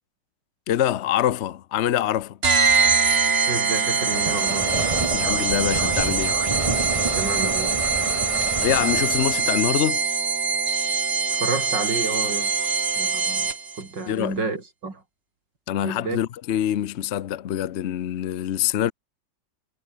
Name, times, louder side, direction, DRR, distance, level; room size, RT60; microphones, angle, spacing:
voice 1, 0.7-2.4 5.1-6.4 8.6-10.0 14.1-14.4 15.7-18.9, left 11 dB, 60° left, 0.7 m, -25 dB
sound 1, 2.4-13.8, right 5 dB, 35° right, 1.7 m, -23 dB
voice 2, 3.5-4.8 7.1-7.8 11.3-12.5 12.9-13.5 13.8-15.0 15.8-16.2, right 3 dB, 80° right, 4.8 m, -30 dB
sound 2, 3.9-9.7, right 2 dB, 20° right, 1.9 m, -29 dB
omnidirectional pair, 1.9 m